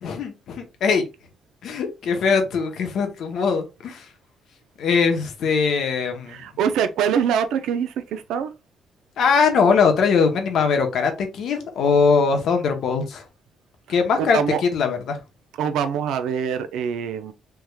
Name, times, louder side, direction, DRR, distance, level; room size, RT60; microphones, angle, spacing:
voice 1, 0.0-1.1 1.6-4.1 4.8-6.4 9.2-13.2 13.9-15.2, left 5 dB, 75° left, 0.8 m, -21 dB
voice 2, 6.3-8.5 14.3-14.6 15.5-17.3, right 8 dB, 85° right, 0.4 m, -24 dB
3.5 x 3.1 x 2.2 m
cardioid pair, 90°, 0 cm